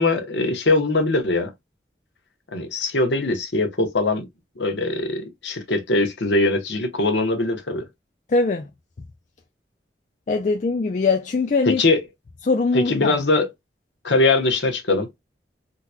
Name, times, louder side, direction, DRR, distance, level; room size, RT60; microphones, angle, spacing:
voice 1, 0.0-1.5 2.5-4.2 4.6-7.8 11.7-12.0 12.7-13.5 14.0-15.1, left 2 dB, 85° left, 1.0 m, -21 dB
voice 2, 8.3-8.7 10.3-11.8 12.4-13.2, left 4 dB, 40° left, 0.3 m, -21 dB
3.7 x 2.9 x 2.2 m
head